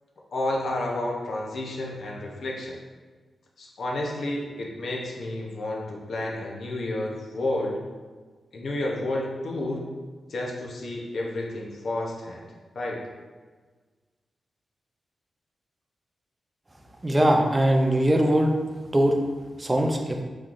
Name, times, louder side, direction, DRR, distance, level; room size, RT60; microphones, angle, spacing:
voice 1, 0.3-2.7 3.6-7.8 8.5-9.8 10.3-12.4 12.7-13.0, left 1 dB, 55° left, -1 dB, 0.7 m, -30 dB
voice 2, 17.0-18.5 18.9-19.2 19.6-20.2, right 1 dB, 15° right, 2 dB, 0.4 m, -21 dB
5.5 x 3.1 x 2.5 m, 1.4 s
wide cardioid pair, 165°, 0 cm